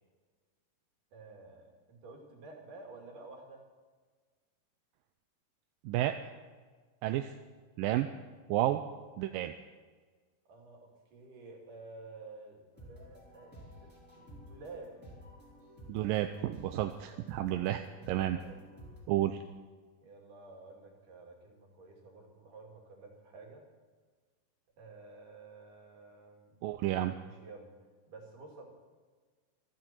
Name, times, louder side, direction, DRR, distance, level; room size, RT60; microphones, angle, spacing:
voice 1, 1.1-3.6 10.5-15.0 16.7-17.0 17.6-18.1 18.3-18.7 19.1-19.4 20.0-23.7 24.8-26.6 27.2-27.7 28.1-28.6, right 3 dB, 65° right, 0 dB, 4.3 m, -51 dB
voice 2, 5.9-6.2 7.0-7.3 7.8-8.1 8.5-8.8 9.2-9.5 15.9-16.9 17.3-18.4 19.1-19.4 26.6-27.1, right 13 dB, 85° right, 8 dB, 2.3 m, -31 dB
sound 1, 12.7-19.0, equal, 5° left, 4.6 m, -53 dB
27.5 x 10.5 x 4.5 m, 1.5 s
omnidirectional pair, 4.0 m